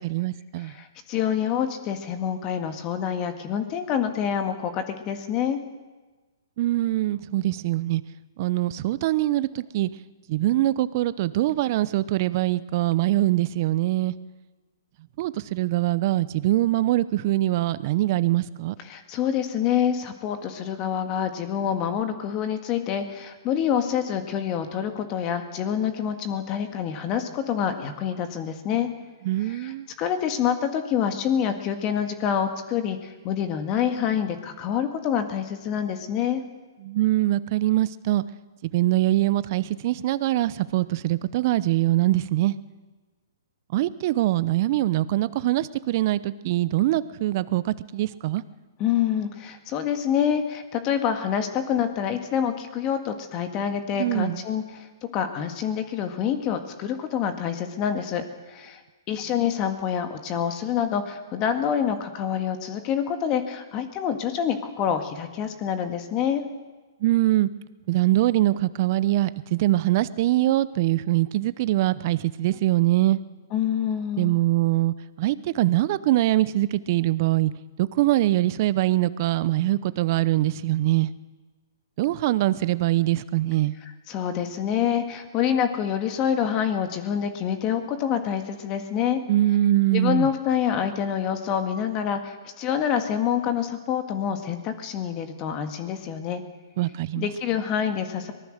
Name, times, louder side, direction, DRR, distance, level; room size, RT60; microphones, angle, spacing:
voice 1, 0.0-0.7 6.6-8.0 8.4-9.9 10.3-14.1 15.2-18.7 29.2-29.9 36.8-38.2 38.6-42.6 43.7-48.4 54.0-54.4 67.0-67.5 67.9-73.2 74.2-77.5 77.8-81.1 82.0-83.8 89.3-90.3 96.8-97.3, right 15 dB, 45° right, 16 dB, 0.8 m, -23 dB
voice 2, 0.6-5.6 18.9-28.9 29.5-29.7 30.0-36.4 48.8-58.8 59.1-66.4 73.5-74.4 84.1-89.2 89.9-96.4 97.2-98.3, left 8 dB, 30° left, 7 dB, 1.9 m, -26 dB
24.0 x 19.0 x 6.6 m, 1.3 s
hypercardioid pair, 135°, 2 cm